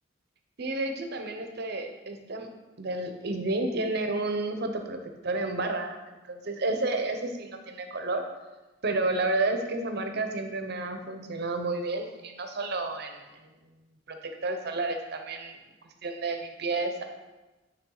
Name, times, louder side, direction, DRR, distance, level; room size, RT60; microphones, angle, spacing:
voice 1, 0.6-2.5 2.8-8.2 8.8-13.5 14.1-15.6 16.0-17.0, right 2 dB, 60° right, 5 dB, 0.8 m, -31 dB
10.0 x 3.5 x 3.9 m, 1.1 s
head